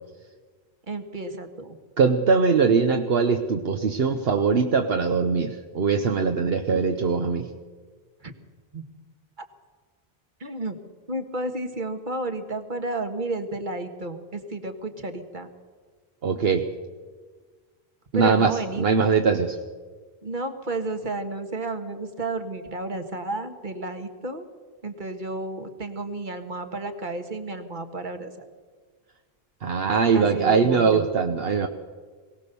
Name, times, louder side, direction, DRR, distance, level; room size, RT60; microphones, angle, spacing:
voice 1, 0.9-1.8 8.2-8.3 8.7-8.8 10.4-10.8 11.1-15.5 18.1-18.9 20.2-24.5 24.8-28.5 30.1-31.0, right 2 dB, 50° right, 7 dB, 1.8 m, -32 dB
voice 2, 2.0-7.5 16.2-16.7 18.1-19.6 29.6-31.7, right 5 dB, 70° right, 6 dB, 1.2 m, -21 dB
22.5 x 17.5 x 6.9 m, 1.5 s
omnidirectional pair, 1.1 m